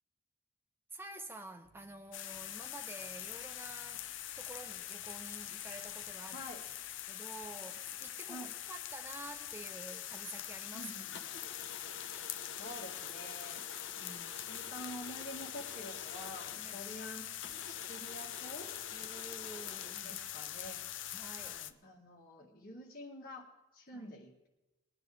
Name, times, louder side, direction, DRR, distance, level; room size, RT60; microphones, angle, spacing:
voice 1, 0.9-4.0 4.3-6.4 7.1-10.9 13.9-14.3 16.6-16.8 18.9-20.2 21.1-21.6 23.9-24.1, right 2 dB, 10° right, 0.7 m, -49 dB
sound 1, 1.6-7.0, right 1 dB, 35° right, 0.9 m, -69 dB
sound 2, 2.1-21.7, left 12 dB, 90° left, 0.6 m, -43 dB
voice 2, 6.3-6.6 8.3-8.5 10.7-11.1 12.6-13.6 14.3-18.7 20.0-20.8 21.4-24.5, equal, 50° left, 2.1 m, -48 dB
sound 3, 7.7-8.5 8.9-9.9 10.3-10.5 11.1-16.9 17.4-20.7, left 4 dB, 75° left, 0.9 m, -51 dB
21.5 x 9.6 x 3.5 m
head